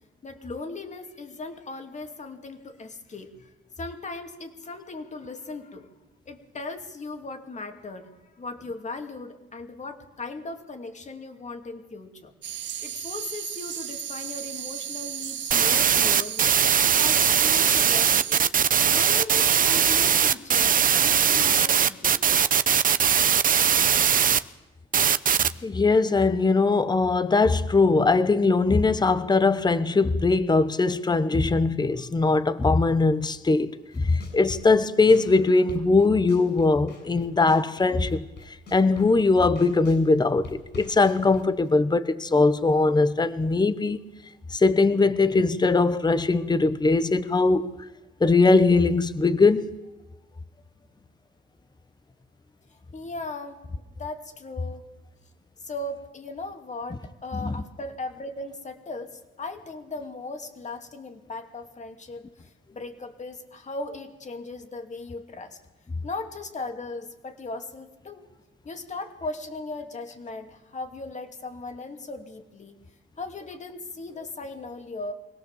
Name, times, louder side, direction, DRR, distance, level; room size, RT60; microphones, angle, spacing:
voice 1, 0.2-3.5 3.8-5.9 6.3-12.3 12.8-16.5 16.9-18.5 18.9-22.3 52.9-53.6 54.0-54.9 55.6-65.6 66.0-68.3 68.6-72.8 73.2-75.1, left 3 dB, 35° left, 2.7 m, -38 dB
sound 1, 12.4-18.4, right 10 dB, 65° right, 1.0 m, -35 dB
sound 2, 15.5-24.4 24.9-25.5, right 8 dB, 45° right, 0.8 m, -20 dB
voice 2, 25.6-38.3 38.7-44.0 44.5-47.7 48.2-49.7 57.4-57.5, left 3 dB, 20° left, 1.1 m, -21 dB
sound 3, 33.9-40.0 40.4-41.7, left 3 dB, 60° left, 6.7 m, -43 dB
24.5 x 17.5 x 7.4 m
cardioid pair, 90°, 20 cm